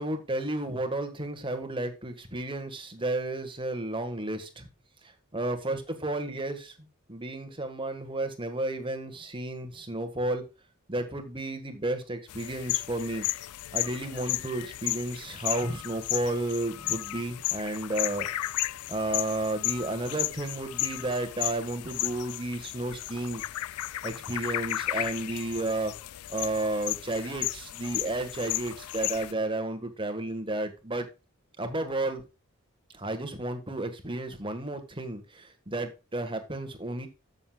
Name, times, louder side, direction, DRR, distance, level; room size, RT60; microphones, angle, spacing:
voice 1, 0.0-4.7 5.0-6.7 7.1-10.5 10.9-13.3 13.7-18.3 18.9-23.4 24.0-25.9 26.3-31.1 31.6-32.2 32.9-37.1, right 2 dB, 25° right, 1.6 m, -32 dB
sound 1, 12.3-29.3, left 16 dB, 85° left, 0.3 m, -34 dB
13.5 x 6.8 x 2.4 m
head